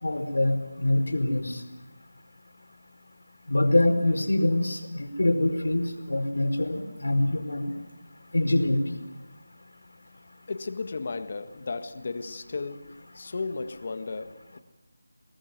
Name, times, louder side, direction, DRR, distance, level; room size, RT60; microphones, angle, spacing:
voice 1, 0.0-1.6 3.5-7.7 8.3-8.8, left 1 dB, 85° left, 4.9 m, -24 dB
voice 2, 10.5-14.6, left 4 dB, 40° left, 1.7 m, -35 dB
24.0 x 19.5 x 9.4 m
figure-of-eight pair, 170°, 0 cm